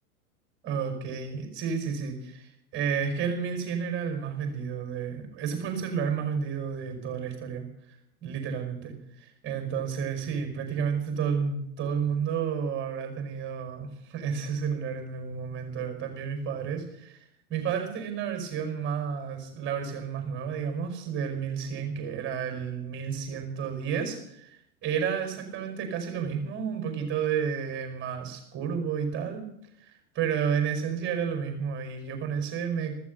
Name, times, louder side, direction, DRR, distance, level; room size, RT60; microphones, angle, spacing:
voice 1, 0.6-7.7 8.2-17.2 17.5-29.4 30.1-33.0, right 7 dB, 25° right, 5 dB, 5.3 m, -31 dB
14.5 x 14.0 x 6.7 m, 0.72 s
figure-of-eight pair, 95°, 45 cm